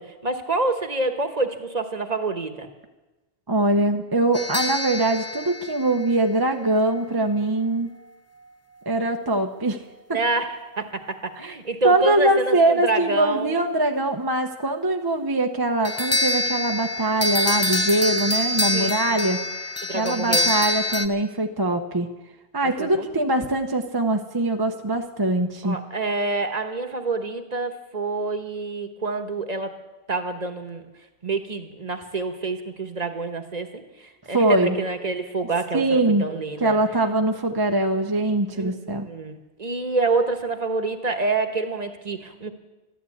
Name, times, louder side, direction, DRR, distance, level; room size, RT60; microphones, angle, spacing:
voice 1, 0.0-2.7 10.1-13.6 18.6-19.0 19.8-20.5 22.6-23.1 25.6-29.7 30.1-30.8 31.2-36.8 38.5-38.7 39.0-42.5, right 3 dB, 40° right, 7 dB, 1.3 m, -27 dB
voice 2, 3.5-7.9 8.9-9.8 11.4-11.5 11.8-19.4 19.9-22.1 22.5-25.8 34.3-34.8 35.7-36.3 36.6-39.1, right 2 dB, 25° right, 4 dB, 0.7 m, -22 dB
sound 1, 4.3-6.6 15.8-21.1, left 1 dB, 20° left, 0.6 m, -25 dB
12.5 x 12.5 x 8.5 m, 1.1 s
omnidirectional pair, 1.0 m